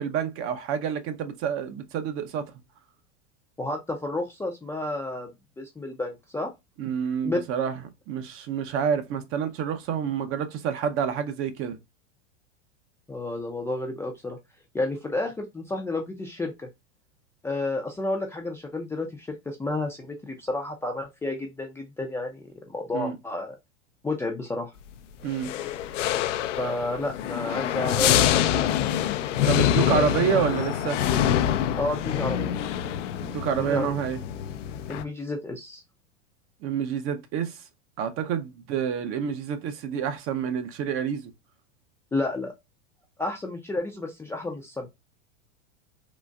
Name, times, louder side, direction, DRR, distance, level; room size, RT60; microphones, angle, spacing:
voice 1, 0.0-2.5 6.8-7.8 8.1-11.8 22.9-23.1 25.2-25.6 29.4-31.0 33.2-34.2 36.6-37.6 38.0-41.3, right 8 dB, 35° right, 0.6 m, -28 dB
voice 2, 3.6-6.5 7.2-7.4 13.1-14.4 14.7-16.7 17.4-23.5 24.0-24.7 26.6-28.7 29.9-30.0 31.8-32.5 33.6-33.9 34.9-35.8 42.1-42.5 43.2-44.9, left 2 dB, 5° left, 0.4 m, -31 dB
sound 1, 25.3-35.0, left 10 dB, 85° left, 0.5 m, -25 dB
3.9 x 2.4 x 2.2 m
hypercardioid pair, 120°, 36 cm